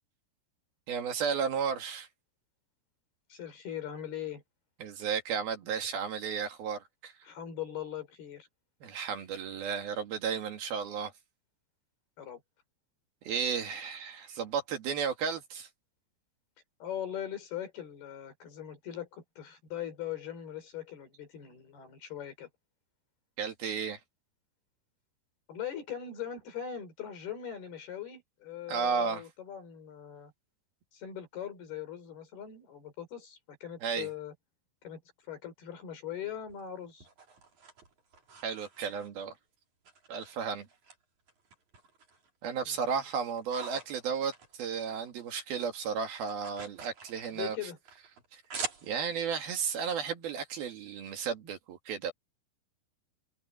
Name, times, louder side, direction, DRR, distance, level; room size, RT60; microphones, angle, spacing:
voice 1, 0.9-2.1 4.8-7.1 8.8-11.1 13.2-15.7 23.4-24.0 28.7-29.2 33.8-34.1 38.4-39.3 40.1-40.7 42.4-47.6 48.3-48.4 48.8-52.1, right 6 dB, 65° right, 3.8 m, -33 dB
voice 2, 3.3-4.4 7.2-8.5 12.2-12.4 16.8-22.5 25.5-30.3 30.9-34.3 34.8-35.0 35.3-37.1 42.6-42.9 47.3-47.8, left 10 dB, 65° left, 6.6 m, -40 dB
sound 1, 36.5-39.4 39.8-41.0 41.3-42.3 42.7-45.3 45.5-49.3, right 5 dB, 45° right, 5.9 m, -45 dB
omnidirectional pair, 4.9 m